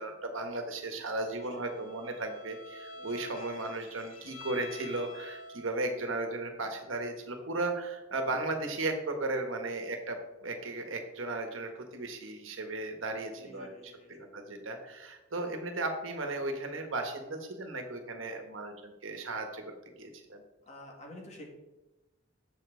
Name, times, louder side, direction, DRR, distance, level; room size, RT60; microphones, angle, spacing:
voice 1, 0.0-13.7 14.1-19.7 20.0-20.4, right 2 dB, 75° right, 5 dB, 1.3 m, -36 dB
voice 2, 0.9-1.7 3.0-3.6 13.4-14.4 20.6-21.5, left 1 dB, 35° left, -1 dB, 1.8 m, -51 dB
Bowed string instrument, 1.3-6.0, left 2 dB, 75° left, 0.7 m, -48 dB
7.6 x 7.0 x 3.8 m, 1.0 s
head